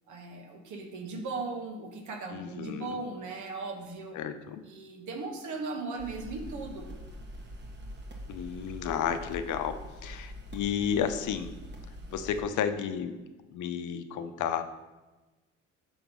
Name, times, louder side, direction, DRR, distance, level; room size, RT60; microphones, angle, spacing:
voice 1, 0.1-4.2 4.6-6.9, right 3 dB, 75° right, 3 dB, 1.3 m, -38 dB
voice 2, 2.3-3.0 4.1-4.6 8.3-11.5 12.1-13.2 13.5-14.6, left 8 dB, 80° left, 9 dB, 0.6 m, -32 dB
sound 1, 6.0-12.4, equal, 35° right, 1.2 m, -44 dB
6.0 x 3.6 x 6.0 m, 1.2 s
cardioid pair, 90°, 30 cm